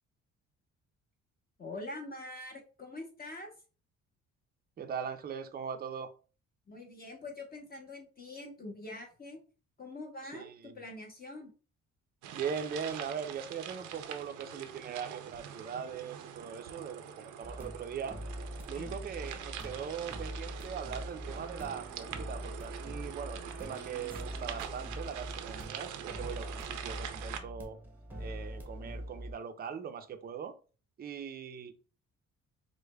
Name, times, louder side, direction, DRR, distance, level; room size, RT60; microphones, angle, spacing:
voice 1, 1.6-3.5 6.7-9.4 9.8-11.5 18.7-18.9, left 2 dB, 30° left, 1 dB, 0.9 m, -44 dB
voice 2, 4.8-6.1 10.2-10.8 12.3-18.2 18.7-27.8 28.2-30.5 31.0-31.7, right 7 dB, 30° right, 7 dB, 0.5 m, -40 dB
sound 1, 12.2-27.4, right 9 dB, 80° right, 0.6 m, -44 dB
sound 2, 17.4-29.3, equal, 5° right, 0.8 m, -43 dB
4.7 x 2.2 x 2.2 m, 0.36 s
cardioid pair, 90°, 30 cm